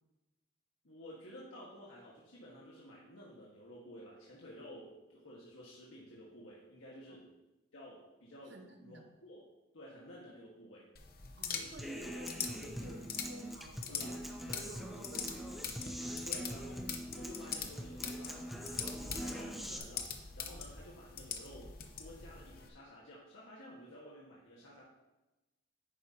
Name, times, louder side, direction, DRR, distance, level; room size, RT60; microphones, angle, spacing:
voice 1, 0.8-7.3 7.7-9.4 9.7-10.9 13.9-14.1 14.5-14.6 16.2-24.8, equal, 85° left, -5 dB, 1.6 m, -53 dB
voice 2, 8.5-9.1 11.4-15.5 15.9-16.3, right 1 dB, 60° right, 4 dB, 1.2 m, -52 dB
sound 1, 11.0-22.7, left 7 dB, 45° left, 0.9 m, -44 dB
Human voice / Acoustic guitar, 11.8-19.8, equal, ahead, 0.6 m, -43 dB
10.5 x 9.3 x 2.8 m, 1.0 s
head